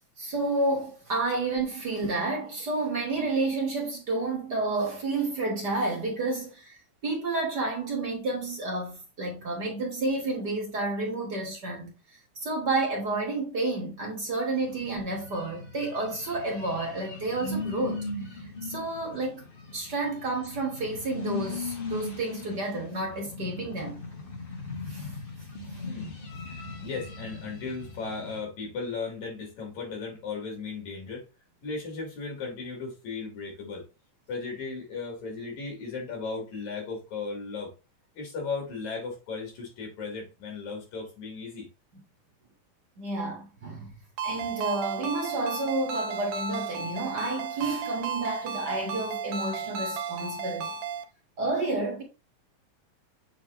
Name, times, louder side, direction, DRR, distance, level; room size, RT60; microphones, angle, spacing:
voice 1, 0.2-11.9 12.4-19.5 19.7-24.0 24.9-25.1 25.7-25.8 43.0-43.9 44.2-50.7 51.4-52.0, right 2 dB, 40° right, 1.9 m, -30 dB
sound 1, 14.6-28.4, left 3 dB, 45° left, 0.7 m, -39 dB
voice 2, 26.5-31.3 31.6-33.8 34.3-37.7 38.2-41.7, left 4 dB, 75° left, 4.2 m, -36 dB
Ringtone, 44.2-51.0, right 5 dB, 75° right, 2.0 m, -34 dB
7.6 x 4.4 x 3.0 m
omnidirectional pair, 3.4 m